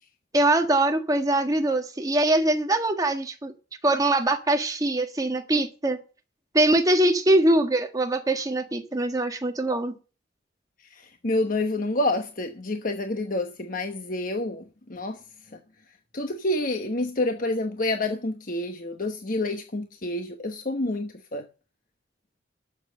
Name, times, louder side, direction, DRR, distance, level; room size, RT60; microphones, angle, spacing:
voice 1, 0.3-3.5 3.8-6.0 6.5-9.9, right 1 dB, 20° right, 1.6 m, -23 dB
voice 2, 10.9-15.2 15.5-15.6 16.1-21.5, left 2 dB, 50° left, 1.1 m, -28 dB
12.0 x 7.2 x 7.6 m
head